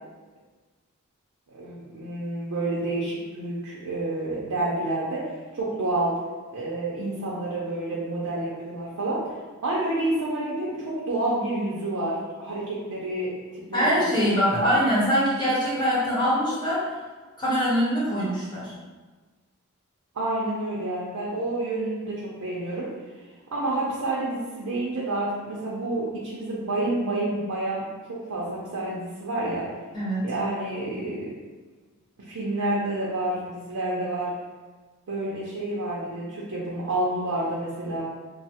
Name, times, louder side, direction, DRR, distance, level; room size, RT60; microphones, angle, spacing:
voice 1, 1.5-6.1 6.5-9.2 9.6-13.9 14.4-14.8 20.1-22.9 23.5-29.6 30.2-31.3 32.3-34.3 35.1-38.0, right 2 dB, 90° right, -6 dB, 0.5 m, -29 dB
voice 2, 13.7-16.8 17.4-18.7 29.9-30.3, equal, 20° left, -8 dB, 0.8 m, -23 dB
3.1 x 2.0 x 2.8 m, 1.3 s
head